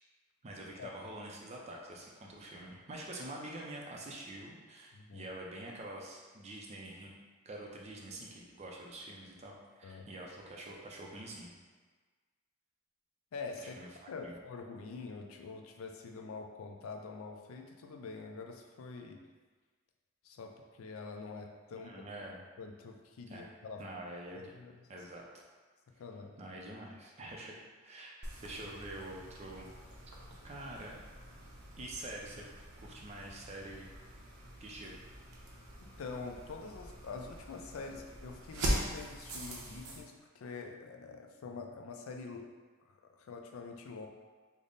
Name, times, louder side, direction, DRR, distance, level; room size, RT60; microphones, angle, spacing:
voice 1, 0.4-7.1 7.5-11.5 13.8-14.3 21.8-22.4 23.3-23.5 23.8-24.5 24.9-25.3 26.4-27.5 27.8-29.8 30.4-31.0 31.8-32.4 32.8-33.9 34.6-35.0, right 1 dB, 30° right, -1 dB, 0.4 m, -46 dB
voice 2, 4.9-5.3 9.8-10.1 13.3-13.8 14.1-19.2 20.2-22.1 22.6-23.8 24.4-24.8 26.0-26.3 35.8-42.4 43.2-44.1, left 4 dB, 70° left, 3 dB, 0.4 m, -45 dB
sound 1, 28.2-40.0, right 1 dB, 80° right, 0.7 m, -42 dB
3.4 x 2.0 x 3.8 m, 1.4 s
head